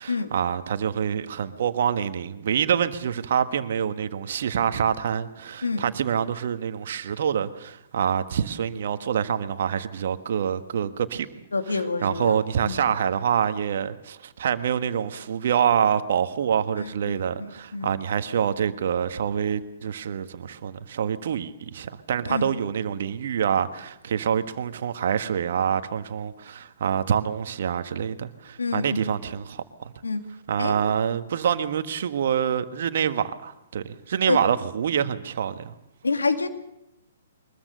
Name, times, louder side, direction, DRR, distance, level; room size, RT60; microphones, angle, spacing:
voice 1, 0.0-11.3 11.7-29.9 30.5-35.7, right 8 dB, 55° right, 1.5 m, -26 dB
voice 2, 11.5-12.8 16.8-16.9 17.4-17.9 22.2-22.5 28.6-29.1 30.0-30.2 30.6-30.8 34.3-34.4 36.0-36.5, left 4 dB, 80° left, 2.4 m, -27 dB
23.0 x 21.0 x 6.7 m
figure-of-eight pair, 120°, 0 cm